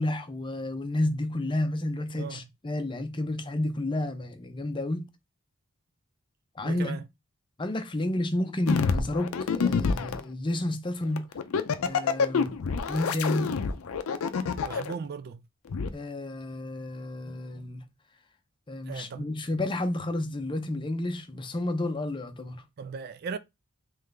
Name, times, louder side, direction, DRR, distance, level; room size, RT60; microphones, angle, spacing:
voice 1, 0.0-5.1 6.6-7.0 7.6-11.2 11.8-12.6 12.9-13.5 15.9-17.8 18.7-22.6, left 1 dB, 20° left, 0.5 m, -31 dB
voice 2, 6.6-7.0 14.6-15.4 18.8-19.3 22.8-23.4, right 5 dB, 45° right, 0.3 m, -37 dB
sound 1, 8.7-10.2 11.2-14.9 15.7-15.9, left 5 dB, 75° left, 0.5 m, -27 dB
3.7 x 3.1 x 3.3 m
head